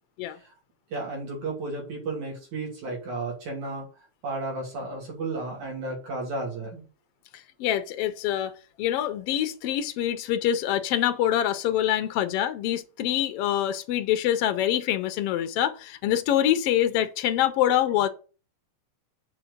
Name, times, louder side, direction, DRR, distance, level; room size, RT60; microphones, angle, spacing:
voice 1, 0.9-3.9 4.2-6.9, right 2 dB, 70° right, 4.1 m, -33 dB
voice 2, 7.3-18.1, left 11 dB, 90° left, 1.3 m, -25 dB
7.3 x 4.5 x 6.7 m
omnidirectional pair, 3.6 m